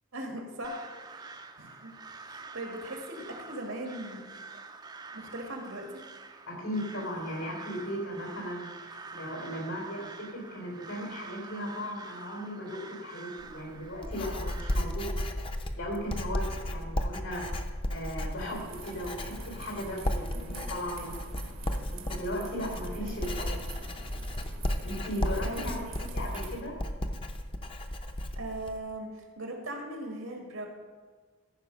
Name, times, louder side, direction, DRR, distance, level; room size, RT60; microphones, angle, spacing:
voice 1, 0.1-1.3 1.6-1.9 2.2-4.2 5.1-6.0 20.3-20.5 23.0-23.3 25.4-25.9 28.4-30.7, right 1 dB, 90° right, 2 dB, 2.0 m, -39 dB
Crow, 0.6-14.8, right 4 dB, 20° right, 0.5 m, -47 dB
voice 2, 6.5-15.1 15.8-17.4 17.9-21.2 21.9-23.7 24.8-26.8, equal, 85° left, 0 dB, 3.7 m, -37 dB
Writing, 13.4-28.8, left 1 dB, 25° left, 0.6 m, -34 dB
sound 1, 18.4-26.6, right 4 dB, 70° right, 1.1 m, -47 dB
14.0 x 5.5 x 5.4 m, 1.5 s
head